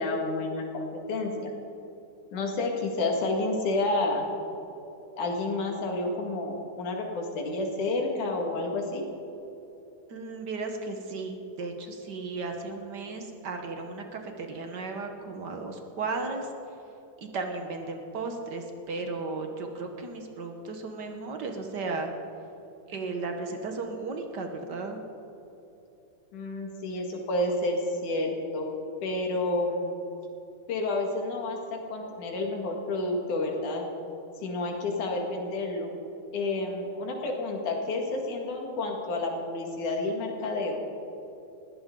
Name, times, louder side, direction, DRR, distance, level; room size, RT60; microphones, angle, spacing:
voice 1, 0.0-1.5 2.3-4.3 5.2-9.1 26.3-28.7 29.0-29.9 30.7-33.9 34.4-35.9 36.3-40.8, left 2 dB, 85° left, 1 dB, 3.5 m, -30 dB
voice 2, 10.1-16.5 17.2-22.1 22.9-25.0, right 3 dB, 50° right, 4 dB, 1.3 m, -35 dB
20.5 x 16.0 x 3.9 m, 3.0 s
omnidirectional pair, 3.4 m